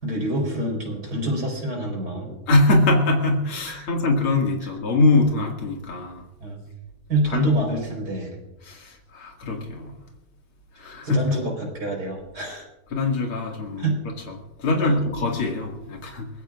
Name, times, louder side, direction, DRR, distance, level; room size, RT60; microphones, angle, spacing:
voice 1, 0.0-2.4 3.7-3.9 6.4-6.6 7.1-8.4 11.0-12.7 13.8-14.0 14.8-15.0, right 1 dB, 45° right, 5.2 m, -26 dB
voice 2, 2.5-6.3 7.3-7.5 8.6-10.0 10.7-11.2 12.9-13.8 14.3-16.3, left 2 dB, 70° left, 3.1 m, -23 dB
23.5 x 19.0 x 2.5 m
omnidirectional pair, 2.4 m